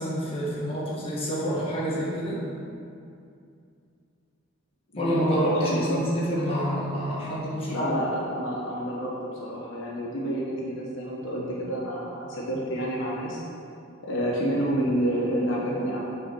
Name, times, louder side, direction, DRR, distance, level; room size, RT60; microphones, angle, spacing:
voice 1, 0.0-2.4 4.9-7.9, equal, 30° left, -6 dB, 1.8 m, -27 dB
voice 2, 4.9-6.0 7.7-13.4 14.0-16.0, equal, 70° left, -4 dB, 1.3 m, -29 dB
6.9 x 6.2 x 6.1 m, 2.5 s
head